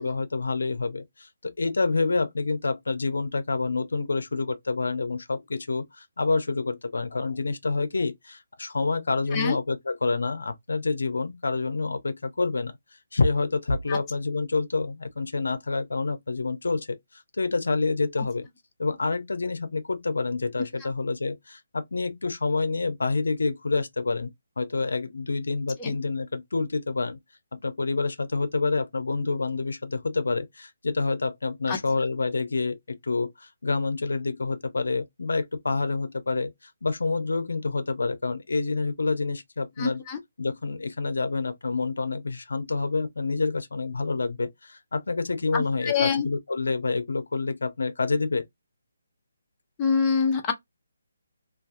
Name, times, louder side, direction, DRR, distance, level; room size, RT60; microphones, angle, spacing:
voice 1, 0.0-12.7 13.1-18.5 18.8-24.3 24.6-27.2 27.5-40.0 40.4-48.5, left 3 dB, 80° left, 0.5 m, -28 dB
voice 2, 39.8-40.2 45.5-46.3 49.8-50.5, left 5 dB, 20° left, 0.7 m, -25 dB
2.3 x 2.3 x 2.4 m
figure-of-eight pair, 155°, 0 cm